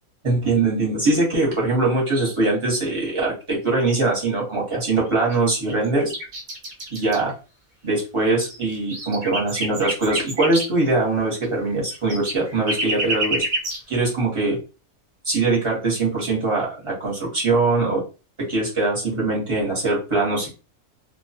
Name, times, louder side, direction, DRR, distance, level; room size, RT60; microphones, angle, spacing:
voice 1, 0.2-6.1 6.9-7.3 7.8-13.4 13.9-14.6 15.2-18.0 18.5-20.5, right 3 dB, 25° right, -4 dB, 0.9 m, -22 dB
sound 1, 5.1-5.3 5.7-7.2 8.0-8.1 8.3-10.7 11.4-11.5 11.7-13.8, right 1 dB, 50° right, 0.6 m, -28 dB
2.3 x 2.3 x 2.7 m, 0.33 s
omnidirectional pair, 1.5 m